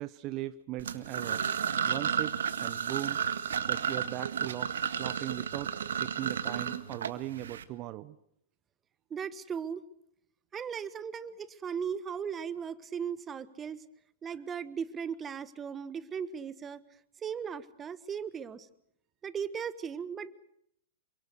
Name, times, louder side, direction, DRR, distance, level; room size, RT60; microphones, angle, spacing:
voice 1, 0.0-1.4 1.9-3.2 3.7-4.7 5.0-8.2, right 16 dB, 40° right, 14 dB, 0.9 m, -38 dB
sound 1, 0.8-7.6, right 8 dB, 75° right, 1.7 m, -32 dB
voice 2, 9.1-9.8 10.5-13.8 14.2-16.8 17.2-18.7 19.2-20.3, right 7 dB, 20° right, 15 dB, 1.4 m, -37 dB
27.5 x 24.5 x 6.4 m, 0.71 s
hypercardioid pair, 110°, 0 cm